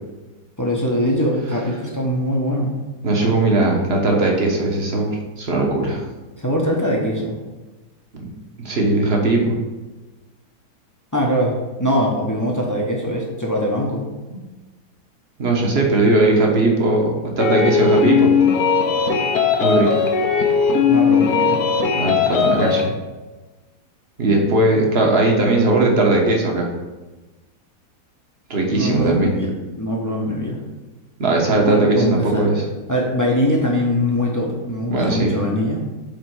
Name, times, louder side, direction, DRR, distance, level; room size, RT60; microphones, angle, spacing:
voice 1, 0.6-2.7 6.4-7.3 11.1-14.0 20.9-21.6 28.7-29.5 29.8-30.6 31.7-32.5 32.9-35.8, equal, 15° left, -2 dB, 0.7 m, -22 dB
voice 2, 3.0-6.0 8.2-8.3 8.6-9.6 14.3-14.4 15.4-18.3 19.6-20.0 22.0-22.9 24.2-26.7 28.5-29.3 31.2-32.6 34.9-35.3, right 2 dB, 40° right, 0 dB, 1.2 m, -18 dB
Clean Electric Guitar Loop, 17.4-22.9, left 6 dB, 65° left, 1.2 m, -18 dB
5.3 x 4.3 x 6.2 m, 1.2 s
omnidirectional pair, 1.9 m